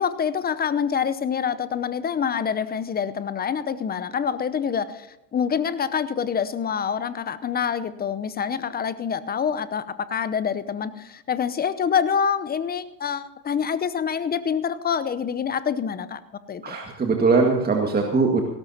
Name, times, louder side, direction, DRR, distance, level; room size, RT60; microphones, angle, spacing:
voice 1, 0.0-16.2 16.5-16.8, left 7 dB, 20° left, 14 dB, 0.7 m, -26 dB
voice 2, 16.6-18.4, right 4 dB, 20° right, 1 dB, 1.9 m, -21 dB
18.0 x 17.5 x 2.8 m, 0.92 s
hypercardioid pair, 95°, 48 cm